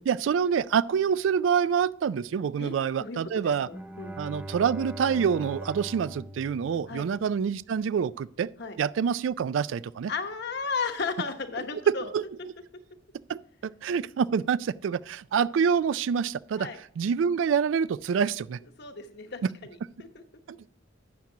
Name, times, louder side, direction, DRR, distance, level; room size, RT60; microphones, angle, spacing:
voice 1, 0.0-3.7 4.2-8.5 8.8-10.1 11.9-12.2 13.3-16.7 17.0-18.6 20.5-20.7, right 7 dB, 80° right, 0.3 m, -26 dB
voice 2, 3.0-4.2 6.9-7.1 8.6-8.8 10.1-12.1 16.6-16.8 18.8-20.2, left 4 dB, 60° left, 1.1 m, -34 dB
Bowed string instrument, 3.7-7.6, right 1 dB, 10° right, 0.5 m, -41 dB
12.0 x 8.5 x 2.8 m
head